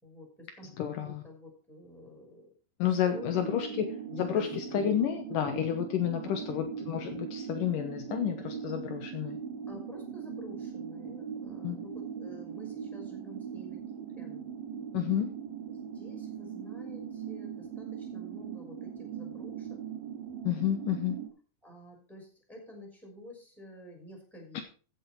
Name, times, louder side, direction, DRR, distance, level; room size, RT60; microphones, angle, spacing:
voice 1, 0.0-2.5 3.0-5.0 6.0-6.7 9.7-14.5 15.7-19.8 21.6-24.6, equal, ahead, 1 dB, 5.5 m, -50 dB
voice 2, 0.8-1.2 2.8-9.4 11.6-11.8 14.9-15.3 20.4-21.2, left 10 dB, 75° left, 6 dB, 2.6 m, -30 dB
sound 1, 3.1-21.3, right 7 dB, 85° right, 4.0 m, -40 dB
15.0 x 7.7 x 4.6 m, 0.38 s
omnidirectional pair, 4.1 m